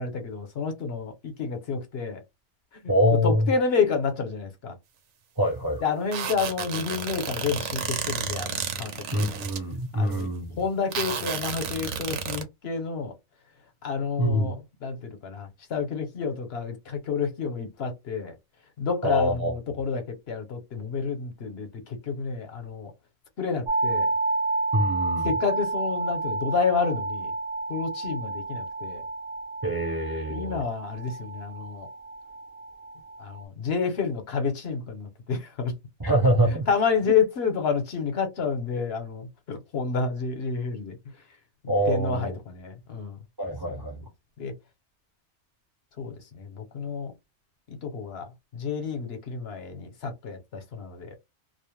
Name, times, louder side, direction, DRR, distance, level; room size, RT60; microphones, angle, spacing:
voice 1, 0.0-2.2 2.8-2.9 3.2-4.7 5.8-9.4 10.0-10.3 10.6-13.1 13.8-14.5 14.8-18.3 18.8-22.9 23.4-24.1 25.2-27.3 27.7-29.0 30.3-31.9 33.2-35.7 36.7-41.0 41.6-43.2 44.4-44.5 46.0-47.1 47.7-51.1, left 5 dB, 65° left, 0.9 m, -29 dB
voice 2, 2.9-3.5 5.4-5.8 9.1-10.6 14.2-14.6 19.0-19.5 24.7-25.3 29.6-30.6 36.0-36.7 41.7-42.4 43.4-44.0, equal, 25° right, 0.5 m, -25 dB
sound 1, 6.1-9.6 10.1-10.2 10.9-12.4, right 7 dB, 85° right, 0.9 m, -32 dB
sound 2, 23.7-33.4, right 3 dB, 60° right, 0.8 m, -30 dB
2.4 x 2.0 x 3.0 m
omnidirectional pair, 1.2 m